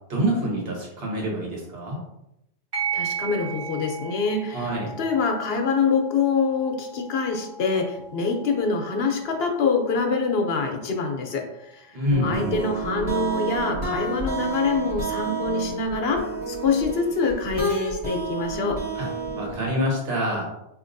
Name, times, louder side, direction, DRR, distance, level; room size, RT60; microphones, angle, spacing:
voice 1, 0.1-2.0 4.5-4.9 11.9-12.6 18.9-19.1 19.4-20.4, equal, 65° right, -2 dB, 1.4 m, -26 dB
sound 1, 2.7-11.7, right 6 dB, 50° right, 1.3 m, -37 dB
voice 2, 2.9-4.7 5.0-18.8, left 4 dB, 70° left, 2 dB, 0.9 m, -25 dB
sound 2, 12.1-19.7, right 3 dB, 35° right, 1.5 m, -30 dB
4.8 x 2.8 x 2.5 m, 0.84 s
omnidirectional pair, 1.1 m